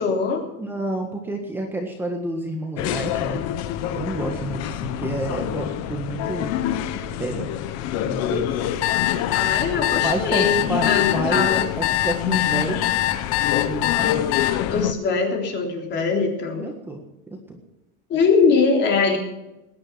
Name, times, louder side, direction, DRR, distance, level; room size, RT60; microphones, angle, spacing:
voice 1, 0.0-0.5 9.3-10.6 10.8-11.7 14.0-14.2 14.7-16.7 18.1-19.2, left 5 dB, 35° left, 2 dB, 3.6 m, -22 dB
voice 2, 0.6-3.4 3.9-6.6 7.2-7.5 8.0-8.6 10.0-11.5 11.8-12.8 13.6-14.2 16.6-17.0 17.3-17.6, right 2 dB, 5° right, 2 dB, 1.6 m, -29 dB
sound 1, 2.8-14.9, left 11 dB, 50° left, 1.2 m, -27 dB
sound 2, 8.6-14.5, left 15 dB, 85° left, 1.5 m, -23 dB
20.0 x 10.5 x 5.9 m, 0.96 s
cardioid pair, 170°, 32 cm